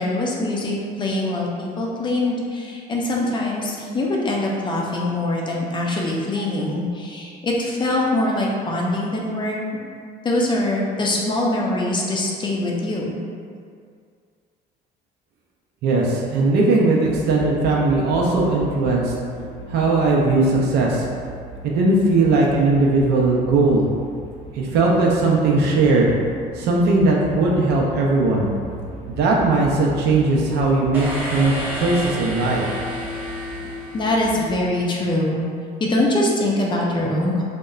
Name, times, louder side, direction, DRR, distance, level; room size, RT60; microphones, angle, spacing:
voice 1, 0.0-9.6 10.2-13.1 33.9-35.4 35.8-37.4, left 1 dB, 30° left, -3 dB, 0.4 m, -23 dB
voice 2, 15.8-19.1 19.7-21.1 21.6-23.9 24.5-26.2 26.6-28.5 29.1-32.7, right 3 dB, 75° right, -3 dB, 0.5 m, -18 dB
sound 1, 17.0-34.7, right 1 dB, 45° right, 0.8 m, -37 dB
sound 2, 30.9-34.8, equal, 10° right, 0.7 m, -31 dB
2.8 x 2.1 x 2.3 m, 2.2 s
cardioid pair, 110°, 17 cm